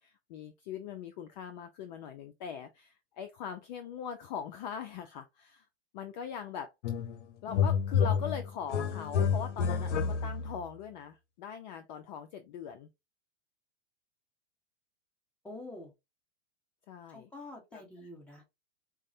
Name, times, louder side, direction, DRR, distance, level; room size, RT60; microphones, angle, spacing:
voice 1, 0.0-5.7 5.9-6.7 7.4-12.9 16.9-17.3 17.7-17.8, left 8 dB, 40° left, 0.4 m, -41 dB
sound 1, 6.8-7.2 7.5-10.6, left 6 dB, 85° left, 0.6 m, -29 dB
voice 2, 15.4-15.9 17.1-18.5, left 2 dB, 5° left, 1.0 m, -47 dB
4.5 x 2.0 x 2.7 m
hypercardioid pair, 130°, 35 cm